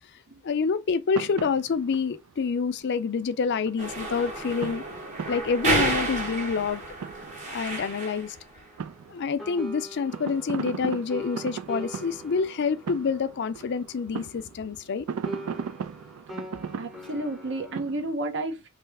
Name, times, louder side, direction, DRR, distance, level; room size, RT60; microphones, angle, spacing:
voice 1, 0.4-4.8 5.3-6.8 7.5-8.4 9.1-15.1, left 5 dB, 55° left, 0.4 m, -27 dB
sound 1, 1.1-3.8 4.1-4.3 4.6-6.2 6.5-8.2 8.6-18.1, right 6 dB, 85° right, 0.4 m, -38 dB
sound 2, 3.8-8.3, right 2 dB, 35° right, 1.0 m, -30 dB
sound 3, 4.0-9.1 9.4-14.9 15.2-17.8, right 1 dB, ahead, 0.6 m, -44 dB
voice 2, 16.8-18.7, right 2 dB, 60° right, 0.8 m, -31 dB
3.2 x 2.8 x 3.4 m
head